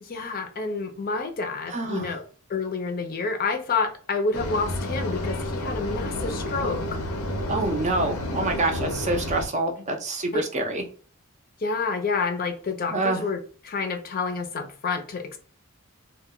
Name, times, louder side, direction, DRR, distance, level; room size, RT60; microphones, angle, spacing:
voice 1, 0.0-2.2 2.5-7.0 10.3-10.4 11.6-13.4 13.6-15.4, left 4 dB, 45° left, 0.4 m, -28 dB
voice 2, 1.7-2.2 7.5-10.8 12.9-13.2, right 2 dB, 35° right, 0.5 m, -26 dB
sound 1, 4.3-9.5, left 1 dB, 85° left, 0.6 m, -30 dB
2.1 x 2.1 x 3.6 m
head